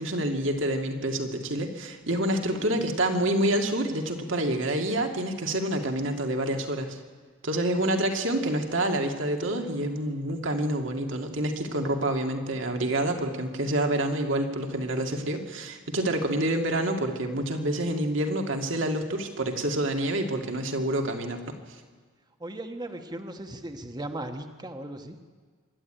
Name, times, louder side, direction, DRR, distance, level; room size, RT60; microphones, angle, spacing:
voice 1, 0.0-7.0 7.4-21.5, right 1 dB, 65° right, 3 dB, 2.3 m, -27 dB
voice 2, 2.3-2.8 22.4-25.2, right 1 dB, 20° right, 6 dB, 1.2 m, -37 dB
25.0 x 12.0 x 9.0 m, 1.5 s
head